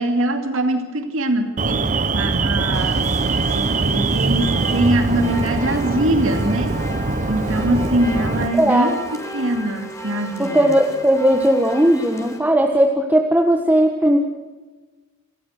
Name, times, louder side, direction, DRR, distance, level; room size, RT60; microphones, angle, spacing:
voice 1, 0.0-3.0 3.4-6.8 7.3-9.0 9.3-10.7, right 1 dB, 65° right, 6 dB, 2.6 m, -22 dB
Alarm, 1.6-8.5, right 3 dB, 35° right, 0.9 m, -22 dB
sound 1, 2.7-12.4, equal, 15° left, 4.0 m, -35 dB
voice 2, 8.6-9.0 10.4-14.2, right 1 dB, 10° right, 3 dB, 1.4 m, -17 dB
28.0 x 15.0 x 6.6 m, 1.3 s
head